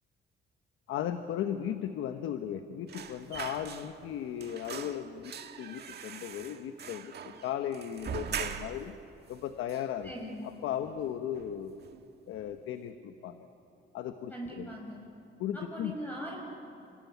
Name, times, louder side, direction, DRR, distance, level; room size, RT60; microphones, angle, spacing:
voice 1, 0.9-8.9 9.3-10.1 10.6-11.8 12.3-13.5 13.9-14.7 15.4-15.9, left 10 dB, 85° left, 8 dB, 1.1 m, -36 dB
sound 1, 2.9-4.1 4.4-8.9 9.3-9.4 9.7-10.5 10.8-11.0 11.3-12.0 12.3-12.5, right 7 dB, 55° right, 1.7 m, -41 dB
voice 2, 10.0-10.5 14.3-15.1 15.5-16.4, equal, 10° left, -3 dB, 5.9 m, -41 dB
28.0 x 19.0 x 9.5 m, 2.7 s
cardioid pair, 90°, 20 cm